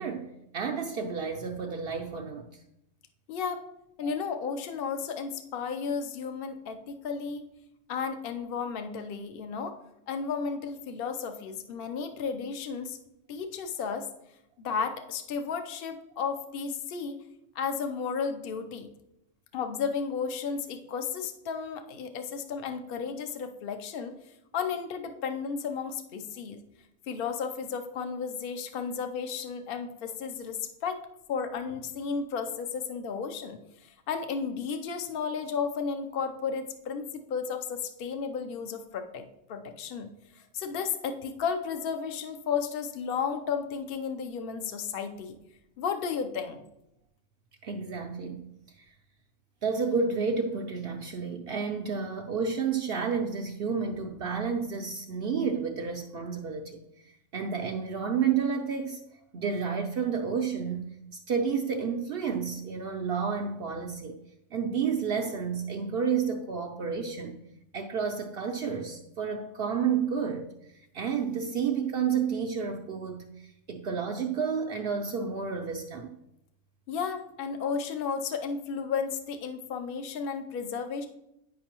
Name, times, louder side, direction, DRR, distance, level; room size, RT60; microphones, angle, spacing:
voice 1, 0.0-2.5 4.0-4.1 47.6-48.4 49.6-56.8 57.3-59.0 59.3-61.0 61.3-64.2 64.5-67.4 67.7-70.5 70.9-76.2, right 6 dB, 65° right, 0.7 m, -30 dB
voice 2, 3.3-3.6 4.0-7.4 7.9-9.8 10.1-13.0 13.3-14.1 14.6-17.2 17.5-18.9 19.5-24.1 24.5-26.6 27.1-31.0 31.3-40.1 40.3-45.4 45.8-46.6 76.9-81.1, left 6 dB, 55° left, 0.8 m, -33 dB
9.4 x 5.3 x 2.9 m
omnidirectional pair, 1.3 m